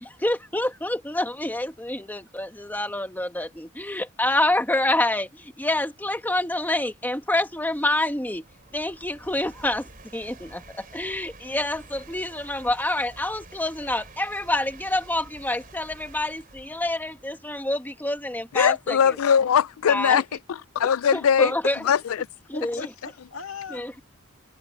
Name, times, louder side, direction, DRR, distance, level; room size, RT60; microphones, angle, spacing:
voice 1, 0.0-8.4 8.7-19.2 19.9-20.2 20.8-21.8 22.5-22.9 23.7-23.9, left 1 dB, 10° left, 1.7 m, -27 dB
sound 1, 5.9-20.7, right 3 dB, 45° right, 3.9 m, -50 dB
voice 2, 18.5-20.2 20.5-21.5 21.8-22.3, left 7 dB, 85° left, 0.4 m, -21 dB
voice 3, 22.5-24.0, left 5 dB, 70° left, 2.2 m, -39 dB
open air
head